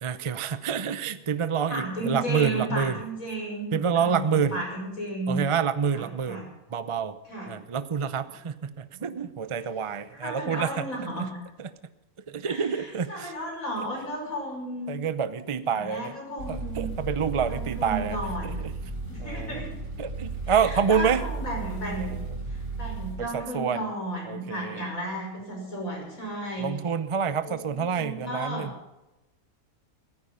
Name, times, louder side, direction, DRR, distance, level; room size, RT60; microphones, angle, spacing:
voice 1, 0.0-3.0 3.7-4.5 5.3-6.4 6.7-7.2 7.5-10.8 12.3-13.3 14.9-16.1 16.5-18.2 18.4-18.7 19.2-19.6 20.0-21.2 23.2-23.8 24.3-24.8 26.6-28.7, right 7 dB, 40° right, 13 dB, 0.4 m, -27 dB
voice 2, 1.7-5.4 5.9-6.5 7.3-7.5 8.9-9.1 10.1-11.3 12.4-14.9 15.6-16.9 17.4-19.7 20.5-22.1 22.5-26.7 27.4-28.7, right 1 dB, 60° left, -1 dB, 6.2 m, -34 dB
sound 1, 16.4-23.2, right 4 dB, 60° right, 8.6 m, -34 dB
16.5 x 14.5 x 5.5 m, 0.98 s
omnidirectional pair, 1.6 m